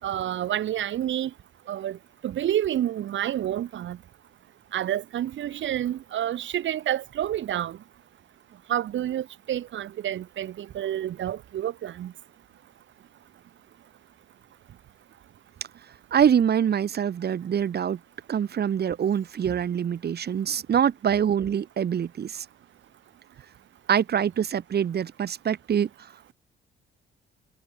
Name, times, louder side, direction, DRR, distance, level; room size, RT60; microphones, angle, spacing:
voice 1, 0.0-1.3 1.7-4.0 4.7-7.8 8.7-12.1, right 11 dB, 70° right, 3.6 m, -29 dB
voice 2, 16.1-18.0 18.3-22.5 23.9-25.9, right 8 dB, 55° right, 2.4 m, -24 dB
cardioid pair, 90°, 20 cm